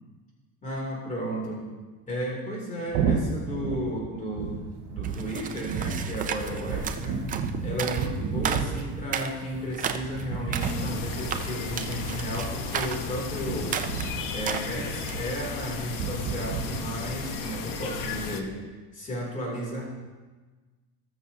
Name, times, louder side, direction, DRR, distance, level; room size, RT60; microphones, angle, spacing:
voice 1, 0.6-1.6 2.1-4.6 4.9-7.2 7.6-13.7 14.3-18.5 18.9-19.8, equal, 20° left, -3 dB, 2.9 m, -33 dB
sound 1, 2.9-16.8, right 5 dB, 60° right, 3.2 m, -33 dB
sound 2, 5.0-15.3, right 7 dB, 20° right, 0.3 m, -35 dB
sound 3, 10.6-18.4, left 5 dB, 50° left, 1.0 m, -34 dB
19.0 x 6.7 x 2.8 m, 1.3 s
cardioid pair, 150°, 42 cm